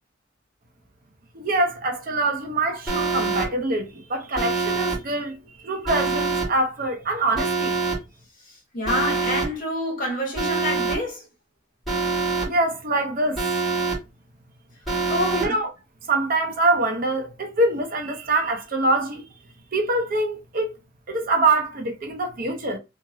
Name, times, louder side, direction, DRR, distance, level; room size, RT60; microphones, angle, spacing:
voice 1, 1.3-5.4 5.6-7.8 12.5-13.4 15.3-15.7 16.1-19.2 19.7-20.8 21.1-22.8, right 2 dB, 45° right, 0.6 m, -24 dB
Alarm, 2.9-3.5 4.4-5.0 5.9-6.5 7.4-8.0 8.9-9.5 10.4-11.0 11.9-12.5 13.4-14.0 14.9-15.5, right 4 dB, ahead, 1.6 m, -24 dB
voice 2, 8.5-11.3 15.1-15.6, left 1 dB, 45° left, 1.2 m, -27 dB
2.9 x 2.5 x 2.6 m
head